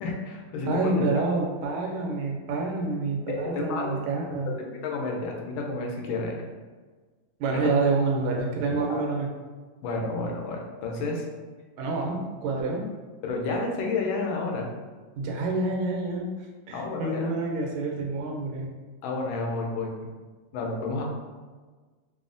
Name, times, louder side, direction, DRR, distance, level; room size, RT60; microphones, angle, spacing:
voice 1, 0.0-0.9 3.3-4.0 4.6-6.4 7.5-7.7 8.9-9.0 9.8-11.3 13.2-14.7 16.7-17.3 19.0-19.9 20.5-21.0, left 3 dB, 85° left, 0 dB, 1.4 m, -30 dB
voice 2, 0.7-4.5 7.4-9.3 11.8-12.8 15.2-16.3 16.7-18.7, right 3 dB, 90° right, 0 dB, 1.4 m, -27 dB
3.5 x 2.0 x 2.5 m, 1.4 s
omnidirectional pair, 2.2 m